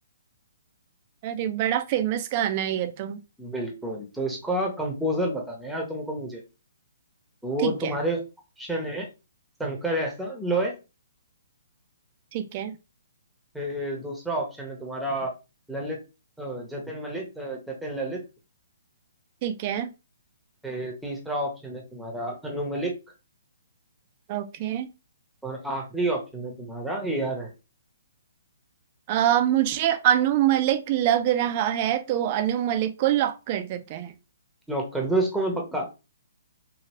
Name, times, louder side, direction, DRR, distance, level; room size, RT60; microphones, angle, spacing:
voice 1, 1.2-3.2 7.6-7.9 12.3-12.7 19.4-19.9 24.3-24.9 29.1-34.1, right 11 dB, 35° right, 0.5 m, -25 dB
voice 2, 3.4-6.4 7.4-8.2 8.6-9.1 9.6-10.8 13.5-15.3 15.7-16.0 16.4-18.2 20.6-22.9 25.4-27.5 34.7-35.9, right 1 dB, ahead, 1.0 m, -29 dB
2.9 x 2.7 x 2.9 m
hypercardioid pair, 140°, 0 cm